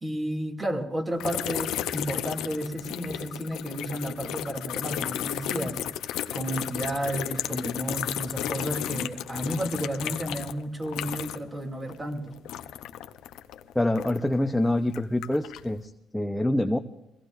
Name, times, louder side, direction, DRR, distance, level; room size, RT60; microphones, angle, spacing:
voice 1, 0.0-5.8 6.3-12.4, right 1 dB, 25° right, 3 dB, 2.5 m, -32 dB
sound 1, 1.2-11.6 11.8-14.4 14.9-15.7, left 11 dB, 90° left, 0.7 m, -33 dB
voice 2, 13.7-16.8, left 1 dB, 5° left, 5 dB, 0.8 m, -26 dB
23.5 x 17.5 x 2.6 m, 0.89 s
cardioid pair, 90°, 0 cm